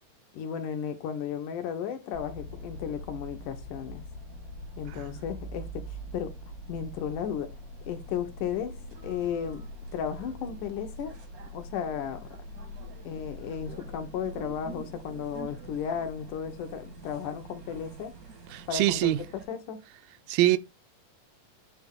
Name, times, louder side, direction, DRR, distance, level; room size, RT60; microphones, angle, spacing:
voice 1, 0.3-4.0 4.8-6.3 6.7-7.5 7.9-8.8 9.0-9.6 9.9-11.2 11.5-12.2 13.0-18.1 18.7-19.8, left 8 dB, 75° left, 2.5 m, -34 dB
sound 1, 2.1-19.5, equal, 50° right, 1.0 m, -43 dB
voice 2, 4.9-5.2 18.5-19.2 20.3-20.6, right 15 dB, 85° right, 2.4 m, -24 dB
8.7 x 3.5 x 3.6 m
omnidirectional pair, 3.9 m